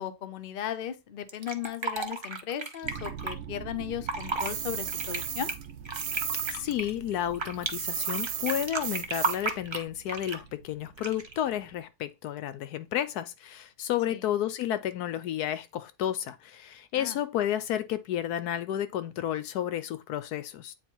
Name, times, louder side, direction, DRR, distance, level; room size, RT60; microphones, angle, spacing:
voice 1, 0.0-5.5 14.1-14.2 17.0-17.2, left 10 dB, 45° left, 0.8 m, -36 dB
Fill (with liquid), 1.3-3.3 3.9-4.5 4.9-7.7 8.1-10.5 11.0-11.4, right 3 dB, 30° right, 0.5 m, -33 dB
sound 1, 2.8-11.8, right 9 dB, 70° right, 1.0 m, -46 dB
sound 2, 4.4-6.6 6.8-9.5, right 8 dB, 85° right, 1.5 m, -34 dB
voice 2, 6.5-20.7, left 11 dB, 80° left, 1.2 m, -31 dB
8.2 x 3.2 x 4.6 m
omnidirectional pair, 1.7 m